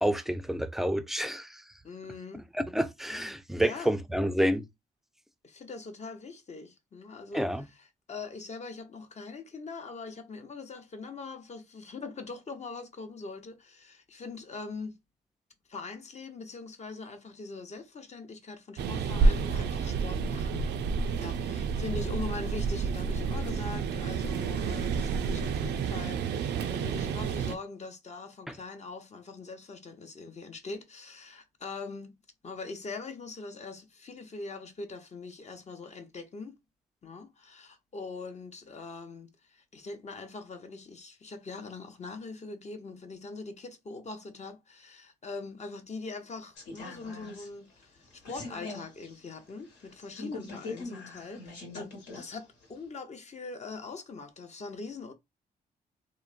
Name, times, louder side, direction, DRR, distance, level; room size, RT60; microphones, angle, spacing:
voice 1, 0.0-1.6 2.5-4.7 7.3-7.6 28.5-28.6, equal, ahead, 0.4 m, -29 dB
voice 2, 1.8-2.4 3.6-3.9 5.4-7.5 7.8-15.0 15.7-20.7 21.2-32.1 32.4-36.6 37.0-55.1, left 3 dB, 40° left, 0.6 m, -42 dB
sound 1, 18.8-27.5, right 4 dB, 70° right, 0.4 m, -29 dB
sound 2, 46.6-52.4 52.6-52.7, left 3 dB, 80° left, 1.1 m, -42 dB
3.0 x 2.1 x 2.4 m
supercardioid pair, 60°, 18 cm